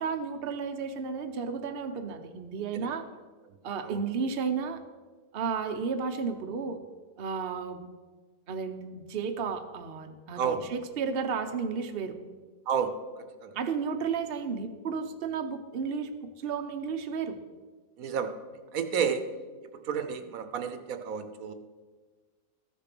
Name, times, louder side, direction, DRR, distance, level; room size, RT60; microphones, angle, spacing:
voice 1, 0.0-3.0 3.6-4.8 5.3-6.8 7.2-7.9 8.5-12.2 13.5-16.1 16.4-17.4, right 5 dB, 50° right, 6 dB, 1.0 m, -33 dB
voice 2, 18.0-18.3 18.7-19.2 19.8-21.5, right 7 dB, 80° right, 8 dB, 1.3 m, -30 dB
13.5 x 6.6 x 6.0 m, 1.4 s
omnidirectional pair, 1.5 m